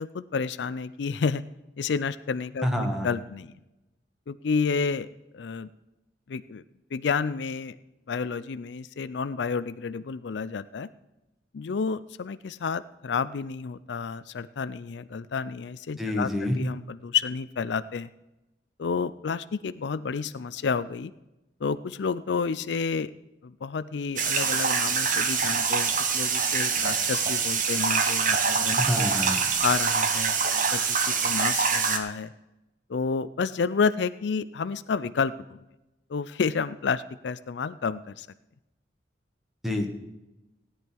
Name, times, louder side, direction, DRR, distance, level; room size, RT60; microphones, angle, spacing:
voice 1, 0.0-1.4 1.8-3.5 4.3-5.1 5.3-5.7 6.3-6.6 6.9-7.8 8.1-10.9 11.5-18.1 18.8-21.1 21.6-23.1 23.4-29.1 29.6-30.3 30.7-30.8 31.1-32.3 32.9-35.6 36.1-38.3, left 5 dB, 70° left, 14 dB, 0.4 m, -30 dB
voice 2, 2.6-3.1 16.0-16.6 28.8-29.4 39.6-39.9, left 1 dB, ahead, 3 dB, 1.7 m, -27 dB
sound 1, 24.2-32.0, right 5 dB, 45° right, 1.3 m, -25 dB
16.5 x 10.0 x 4.6 m, 0.96 s
head